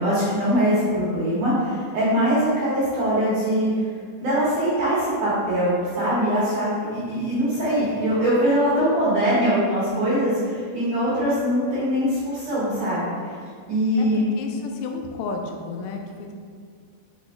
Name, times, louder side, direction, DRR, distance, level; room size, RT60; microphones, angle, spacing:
voice 1, 0.0-3.7 4.2-13.3 13.7-14.2, equal, 60° right, -9 dB, 2.3 m, -22 dB
voice 2, 14.4-16.3, left 3 dB, 85° left, 2 dB, 3.3 m, -32 dB
10.0 x 6.1 x 2.4 m, 2.1 s
omnidirectional pair, 5.7 m